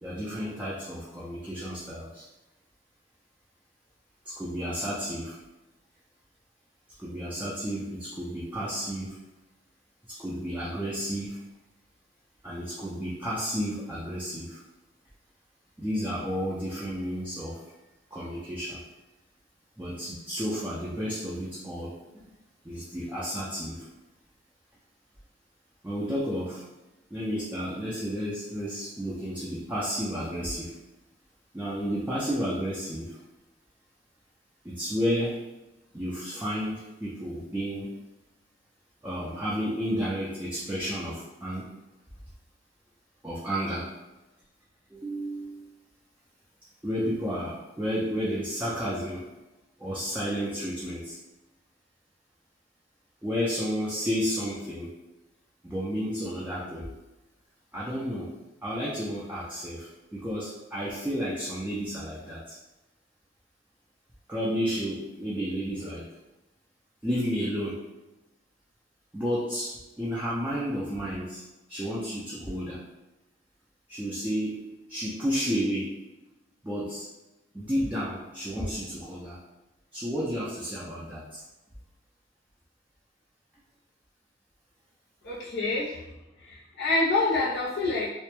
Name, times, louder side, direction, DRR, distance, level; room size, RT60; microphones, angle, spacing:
voice 1, 0.0-2.2 4.3-5.4 7.0-9.2 10.1-11.4 12.4-14.6 15.8-17.6 18.1-18.8 19.8-21.9 22.2-22.3 22.6-23.9 25.8-26.6 27.1-30.7 31.5-33.2 34.6-35.4 35.9-37.9 39.0-41.7 43.2-43.9 44.9-45.7 46.8-49.3 49.8-51.2 53.2-54.9 55.6-56.9 57.7-58.3 58.6-62.6 64.3-66.1 67.0-67.8 69.1-71.4 71.7-72.8 73.9-74.6 74.9-75.9 76.6-77.1 77.5-79.4 79.9-81.4, equal, 10° right, -8 dB, 0.3 m, -32 dB
voice 2, 85.2-86.0 86.4-88.1, left 2 dB, 60° left, -7 dB, 0.5 m, -27 dB
2.1 x 2.0 x 2.9 m, 1.0 s
head